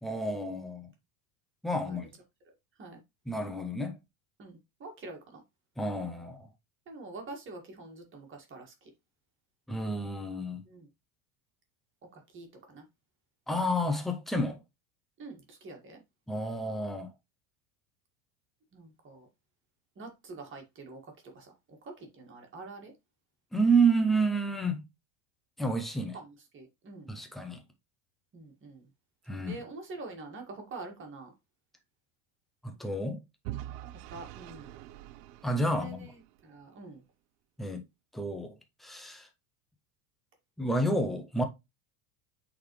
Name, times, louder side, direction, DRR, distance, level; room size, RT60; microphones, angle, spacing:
voice 1, 0.0-0.9 1.6-2.1 3.3-4.0 5.8-6.5 9.7-10.6 13.5-14.6 16.3-17.1 23.5-24.8 25.6-26.2 27.1-27.6 29.3-29.6 32.6-33.2 35.4-36.1 37.6-37.8 38.1-38.5 38.8-39.3 40.6-41.4, right 2 dB, ahead, 0.3 m, -30 dB
voice 2, 4.4-5.4 6.9-8.9 10.7-10.9 12.1-12.8 15.2-16.0 18.7-19.3 20.0-21.0 21.4-21.5 21.8-22.9 26.1-27.1 28.3-28.8 29.5-31.3 34.1-34.8 35.7-36.1 36.4-37.0, right 3 dB, 25° right, 1.8 m, -45 dB
Vehicle / Engine, 33.4-36.5, right 14 dB, 80° right, 0.7 m, -44 dB
8.6 x 4.1 x 3.1 m
supercardioid pair, 155°, 49 cm